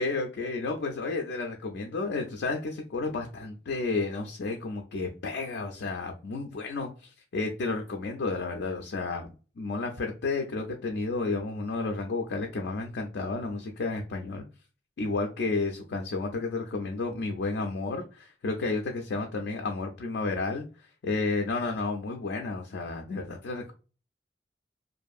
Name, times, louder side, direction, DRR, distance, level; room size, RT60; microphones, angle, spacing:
voice 1, 0.0-14.4 15.0-20.6 21.0-23.7, left 3 dB, 75° left, 3 dB, 0.4 m, -32 dB
2.6 x 2.5 x 2.3 m, 0.34 s
head